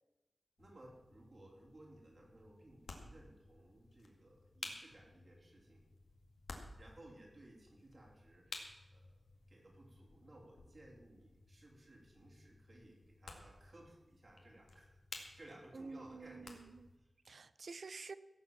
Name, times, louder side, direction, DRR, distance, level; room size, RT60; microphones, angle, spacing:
sound 1, 0.6-17.0, left 3 dB, 90° left, 2.0 m, -55 dB
voice 1, 0.6-5.8 6.8-9.2 9.5-16.6 17.0-17.1, right 1 dB, 45° right, -2 dB, 4.2 m, -60 dB
voice 2, 15.7-16.9 17.3-18.1, right 4 dB, 70° right, 15 dB, 0.6 m, -49 dB
17.0 x 7.2 x 7.4 m, 1.0 s
wide cardioid pair, 105°, 0 cm